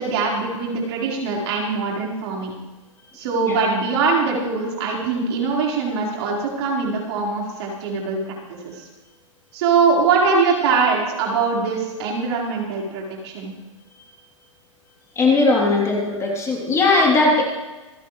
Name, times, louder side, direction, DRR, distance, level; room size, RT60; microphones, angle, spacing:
voice 1, 0.0-2.5 3.1-8.3 8.6-8.9 9.5-13.5 17.2-17.3, right 4 dB, 55° right, -2 dB, 4.5 m, -22 dB
voice 2, 15.1-17.4, left 3 dB, 15° left, -2 dB, 3.2 m, -18 dB
26.5 x 9.1 x 3.2 m, 1.2 s
hypercardioid pair, 125°, 17 cm